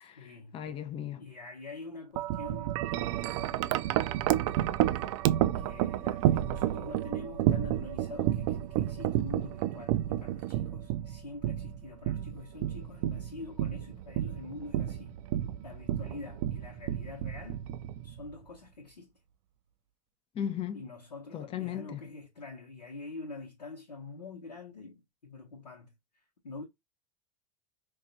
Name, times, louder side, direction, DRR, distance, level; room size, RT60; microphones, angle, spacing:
voice 1, 0.0-0.6 1.2-3.7 5.5-15.2 15.6-17.7 18.0-19.2 20.7-26.6, left 3 dB, 85° left, 1.0 m, -46 dB
voice 2, 0.5-1.2 20.3-20.8 21.3-22.0, left 9 dB, 25° left, 0.6 m, -36 dB
Wind chime, 2.2-18.3, right 13 dB, 55° right, 0.4 m, -31 dB
4.6 x 2.3 x 2.6 m
figure-of-eight pair, 85°, 21 cm